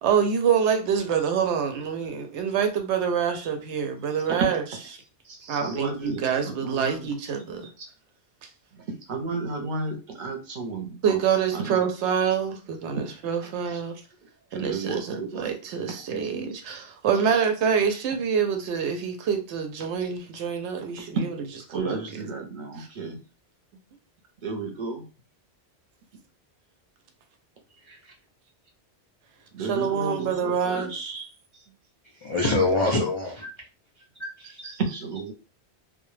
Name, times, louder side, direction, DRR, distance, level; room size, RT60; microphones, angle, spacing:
voice 1, 0.0-4.6 5.5-7.7 11.0-14.0 14.6-21.3 21.7-22.0 29.7-31.1, right 7 dB, 85° right, 0.9 m, -26 dB
voice 2, 5.2-7.1 7.8-7.9 8.7-11.2 11.5-11.8 13.0-13.1 13.7-13.8 14.5-15.5 15.9-16.1 17.2-17.4 21.0-21.1 21.7-23.2 24.4-25.0 29.5-31.3 34.9-35.3, right 4 dB, 50° right, 0.7 m, -33 dB
voice 3, 32.1-33.5 34.2-34.7, left 2 dB, 50° left, 0.3 m, -25 dB
2.2 x 2.0 x 3.1 m
omnidirectional pair, 1.1 m